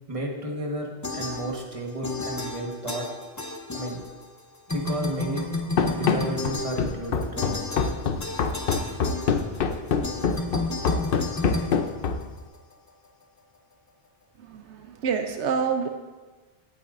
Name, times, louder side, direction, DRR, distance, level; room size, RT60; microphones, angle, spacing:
voice 1, 0.1-3.1 3.7-4.0 4.7-5.5 5.9-7.5, right 1 dB, 30° right, 0 dB, 1.5 m, -32 dB
sound 1, 1.0-4.4 4.7-12.6, left 2 dB, 20° left, 0.6 m, -32 dB
Run, 5.8-12.4, left 5 dB, 60° left, 0.8 m, -25 dB
voice 2, 14.4-15.9, right 6 dB, 80° right, 5 dB, 1.0 m, -27 dB
16.5 x 8.6 x 2.6 m, 1.3 s
omnidirectional pair, 1.2 m